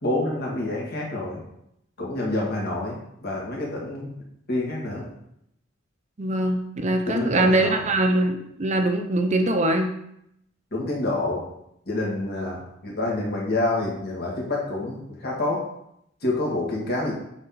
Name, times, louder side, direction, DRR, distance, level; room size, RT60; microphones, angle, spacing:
voice 1, 0.0-1.4 2.0-4.1 4.5-5.1 7.1-7.9 10.7-11.4 11.9-15.6 16.2-17.1, left 2 dB, 55° left, -3 dB, 2.0 m, -27 dB
voice 2, 6.2-9.9, right 1 dB, 35° right, 5 dB, 0.6 m, -22 dB
6.8 x 4.4 x 4.0 m, 0.75 s
head